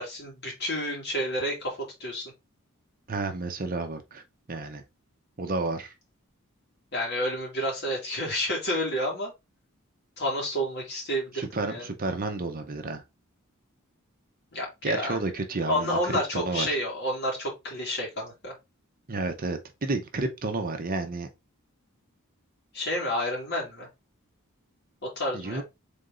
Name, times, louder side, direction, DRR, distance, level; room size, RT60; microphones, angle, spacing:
voice 1, 0.0-2.3 6.9-9.3 10.2-11.9 14.5-15.2 15.7-18.5 22.7-23.9 25.0-25.6, equal, 50° left, 2.4 m, -30 dB
voice 2, 3.1-4.2 4.5-4.8 5.4-5.9 11.3-13.0 14.8-16.8 19.1-21.3 25.3-25.6, right 3 dB, 40° right, 0.7 m, -31 dB
3.8 x 3.5 x 3.8 m
head